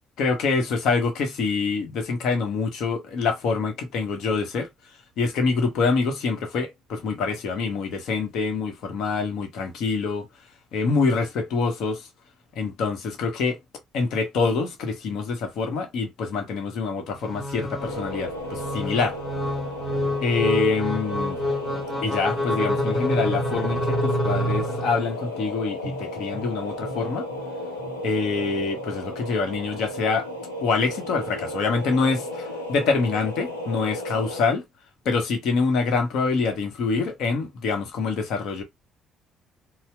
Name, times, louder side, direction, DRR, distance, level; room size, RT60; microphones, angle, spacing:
voice 1, 0.2-4.7 5.2-10.3 10.7-12.0 12.6-13.6 13.9-19.2 20.2-21.4 22.0-27.3 28.0-30.3 30.6-34.6 35.0-38.6, left 4 dB, 60° left, 0.9 m, -25 dB
sound 1, 17.2-25.2, left 1 dB, 10° right, 1.6 m, -27 dB
sound 2, 17.8-34.4, equal, 85° left, 0.8 m, -34 dB
4.2 x 2.0 x 2.2 m
figure-of-eight pair, 45°, 0 cm